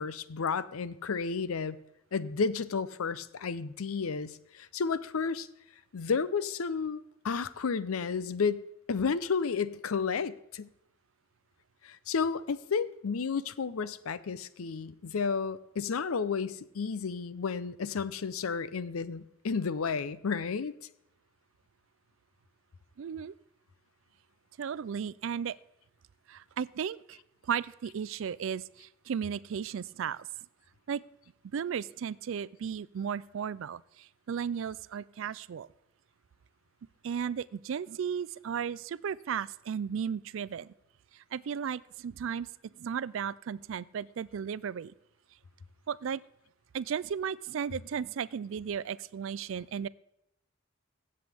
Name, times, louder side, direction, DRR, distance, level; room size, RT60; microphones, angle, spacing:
voice 1, 0.0-1.8 2.1-5.5 5.9-10.7 11.8-20.7, left 5 dB, 90° left, 16 dB, 0.6 m, -32 dB
voice 2, 23.0-23.3 24.6-25.6 26.3-27.2 27.4-30.3 30.9-31.0 31.5-35.7 37.0-40.7 41.1-44.9 45.9-46.2 46.7-49.9, right 7 dB, 65° right, 20 dB, 0.3 m, -35 dB
15.5 x 7.7 x 3.5 m, 0.82 s
head